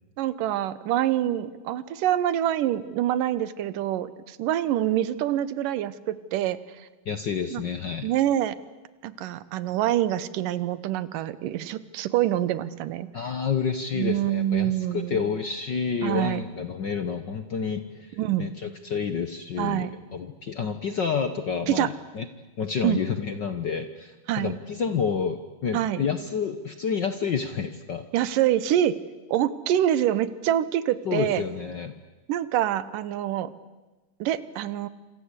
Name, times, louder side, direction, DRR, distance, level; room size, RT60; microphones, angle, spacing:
voice 1, 0.2-6.9 7.5-7.6 8.0-8.6 9.0-13.1 13.9-15.2 16.0-16.4 18.2-18.5 19.6-19.9 21.7-21.9 22.8-23.0 24.3-24.6 25.7-26.0 28.1-29.0 29.3-31.4 32.3-33.5 34.2-34.9, right 12 dB, 90° right, 15 dB, 2.7 m, -26 dB
voice 2, 7.0-8.1 13.1-22.3 22.6-28.0 31.0-31.9, left 6 dB, 65° left, 9 dB, 1.1 m, -29 dB
27.0 x 27.0 x 8.3 m, 1.2 s
omnidirectional pair, 3.7 m